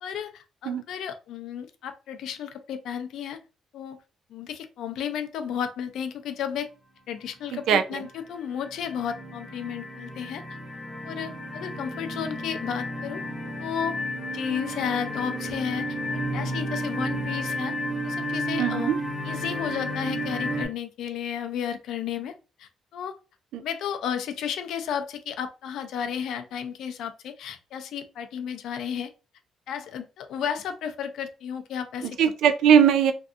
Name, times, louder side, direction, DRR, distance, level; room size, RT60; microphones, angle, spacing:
voice 1, 0.0-3.4 3.7-4.0 4.3-6.7 7.1-10.4 11.0-13.2 13.6-13.9 14.3-17.7 18.0-18.9 19.2-22.3 22.6-23.1 23.6-29.1 29.7-32.2, left 8 dB, 70° left, 0.4 m, -33 dB
sound 1, 7.5-7.9 8.4-20.7, equal, 10° left, 0.6 m, -32 dB
voice 2, 7.5-8.1 18.6-19.0 23.5-23.6 32.0-33.1, right 8 dB, 80° right, 0.3 m, -20 dB
2.6 x 2.4 x 2.4 m
cardioid pair, 160°, 0 cm